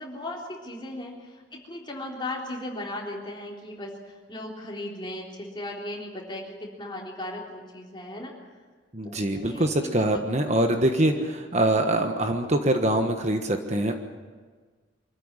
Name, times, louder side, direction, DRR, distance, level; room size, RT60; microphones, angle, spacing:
voice 1, 0.0-8.3 9.0-10.2, left 1 dB, 25° left, -1 dB, 3.7 m, -37 dB
voice 2, 8.9-13.9, right 1 dB, 35° right, 5 dB, 1.4 m, -24 dB
25.0 x 14.0 x 9.9 m, 1.5 s
head